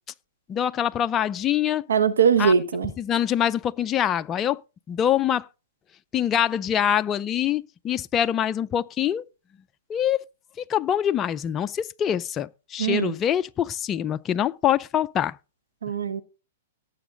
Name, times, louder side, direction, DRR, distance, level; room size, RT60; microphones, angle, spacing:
voice 1, 0.5-1.9 2.4-2.5 3.0-4.6 4.9-5.5 6.1-9.2 9.9-10.2 10.6-15.4, left 10 dB, 20° left, 0.5 m, -24 dB
voice 2, 1.9-2.9 12.8-13.1 15.8-16.2, right 7 dB, 90° right, 1.4 m, -21 dB
18.0 x 7.1 x 3.9 m
hypercardioid pair, 140°, 0 cm